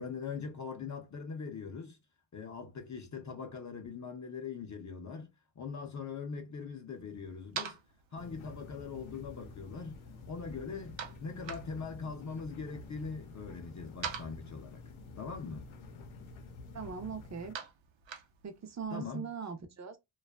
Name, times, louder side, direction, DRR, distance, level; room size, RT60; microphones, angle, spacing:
voice 1, 0.0-2.0 2.3-5.3 5.6-7.8 8.1-10.0 10.3-14.8 15.2-15.7 18.9-19.3, left 5 dB, 40° left, 0.5 m, -41 dB
sound 1, 6.9-18.9, right 7 dB, 75° right, 0.7 m, -48 dB
sound 2, 8.2-17.5, left 3 dB, 90° left, 0.7 m, -49 dB
voice 2, 16.7-17.6 18.4-20.0, right 6 dB, 40° right, 0.5 m, -40 dB
2.5 x 2.3 x 2.2 m
wide cardioid pair, 140°, 46 cm